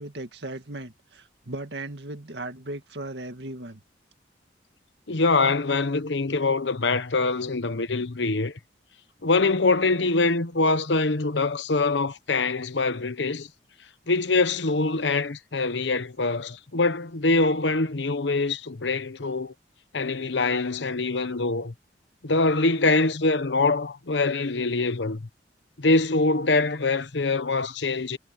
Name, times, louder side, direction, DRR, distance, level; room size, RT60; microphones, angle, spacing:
voice 1, 0.0-3.8, right 2 dB, 70° right, 2.0 m, -37 dB
voice 2, 5.1-8.5 9.2-13.5 14.1-19.5 19.9-21.7 22.2-25.2 25.8-28.2, left 3 dB, 80° left, 1.0 m, -24 dB
head